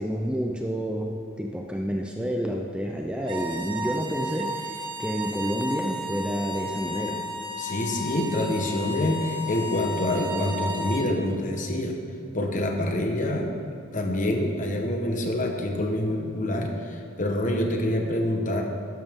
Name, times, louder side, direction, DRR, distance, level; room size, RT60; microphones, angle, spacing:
voice 1, 0.0-7.2, equal, 5° right, 1 dB, 0.6 m, -29 dB
sound 1, 3.2-11.1, left 1 dB, 25° right, 1.2 m, -33 dB
voice 2, 7.6-12.0 12.3-13.5 13.9-18.6, left 1 dB, 40° left, 2 dB, 1.3 m, -26 dB
13.0 x 11.0 x 3.7 m, 2.3 s
head